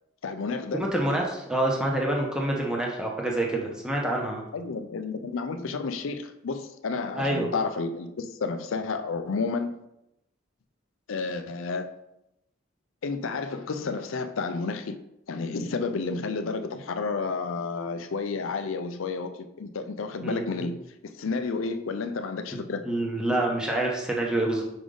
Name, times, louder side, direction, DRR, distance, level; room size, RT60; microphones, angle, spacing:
voice 1, 0.2-0.9 4.5-9.7 11.1-11.9 13.0-15.0 15.3-20.8 21.2-22.8, left 4 dB, 80° left, 8 dB, 0.5 m, -31 dB
voice 2, 0.7-4.4 7.1-7.5 20.2-20.7 22.5-24.6, right 1 dB, 5° right, -1 dB, 1.0 m, -27 dB
5.1 x 4.9 x 3.9 m, 0.85 s
head